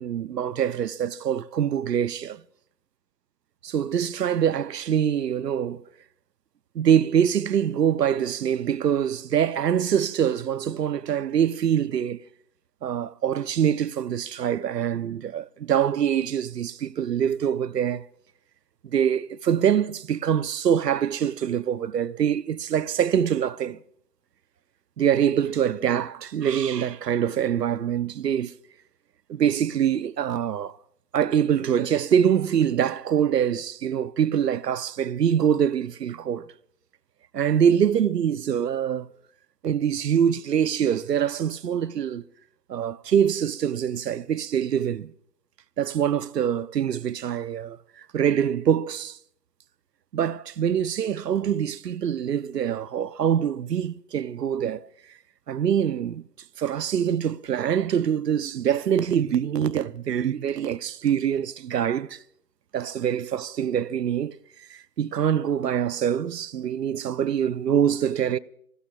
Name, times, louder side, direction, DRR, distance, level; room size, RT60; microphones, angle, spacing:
voice 1, 0.0-2.4 3.6-5.8 6.7-12.2 12.8-18.1 18.8-23.8 25.0-28.5 29.3-30.7 31.1-36.5 37.3-39.1 39.6-42.2 42.7-45.1 45.8-49.2 50.1-54.9 55.5-56.3 56.6-62.2 62.7-64.4 64.7-68.4, right 9 dB, 85° right, 0.7 m, -24 dB
29.5 x 15.5 x 2.3 m
hypercardioid pair, 175°, 47 cm